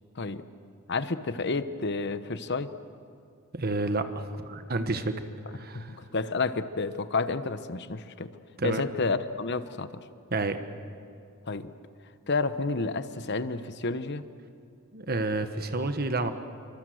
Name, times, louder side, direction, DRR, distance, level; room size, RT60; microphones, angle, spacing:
voice 1, 0.9-2.7 5.7-8.3 8.6-9.9 11.5-11.7 12.3-14.2, left 3 dB, 50° left, 12 dB, 1.0 m, -30 dB
voice 2, 3.5-5.2 5.5-6.0 8.6-8.8 10.3-10.6 14.9-16.3, right 2 dB, 45° right, 9 dB, 1.3 m, -30 dB
26.5 x 25.0 x 7.9 m, 2.5 s
head